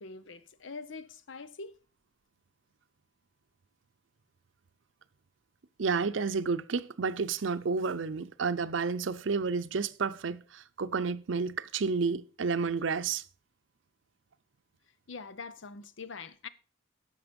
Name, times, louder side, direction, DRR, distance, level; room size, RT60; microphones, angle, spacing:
voice 1, 0.0-1.8 15.1-16.5, left 4 dB, 85° left, 0.7 m, -44 dB
voice 2, 5.8-13.2, right 5 dB, 85° right, 0.6 m, -31 dB
11.0 x 6.6 x 5.2 m
head